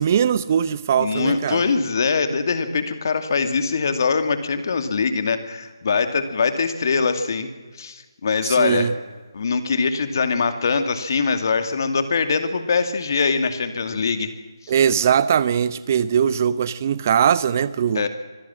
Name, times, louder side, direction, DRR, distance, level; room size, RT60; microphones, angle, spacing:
voice 1, 0.0-1.6 8.4-8.9 14.7-18.1, right 8 dB, 35° right, 0.7 m, -20 dB
voice 2, 0.9-7.5 7.8-8.9 9.3-14.3 17.9-18.1, left 5 dB, 50° left, 2.4 m, -22 dB
25.0 x 16.5 x 7.5 m
figure-of-eight pair, 155°, 2 cm